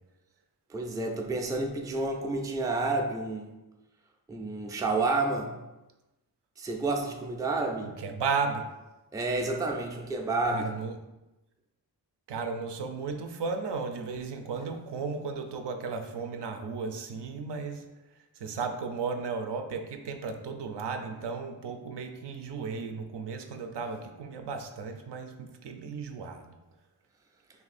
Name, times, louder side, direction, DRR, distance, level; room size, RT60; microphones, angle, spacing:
voice 1, 0.7-3.5 4.3-5.5 6.6-7.9 9.1-10.7, right 3 dB, 10° right, 2 dB, 0.3 m, -30 dB
voice 2, 7.8-8.7 10.4-11.0 12.3-17.8 18.3-26.5, right 5 dB, 75° right, 6 dB, 0.5 m, -35 dB
2.7 x 2.6 x 4.0 m, 1.0 s
wide cardioid pair, 85°, 42 cm